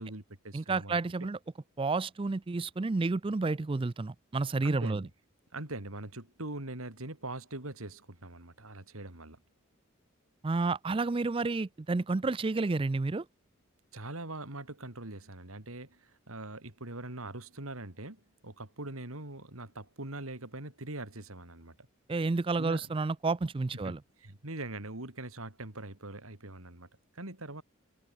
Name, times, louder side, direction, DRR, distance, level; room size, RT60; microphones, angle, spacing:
voice 1, 0.0-1.3 4.6-5.1 5.5-9.4 13.9-21.8 22.6-22.9 23.8-26.9 27.1-27.6, right 2 dB, 85° right, 3.8 m, -42 dB
voice 2, 0.5-1.4 1.8-5.0 10.4-13.2 22.1-24.0, right 3 dB, 25° right, 0.4 m, -30 dB
head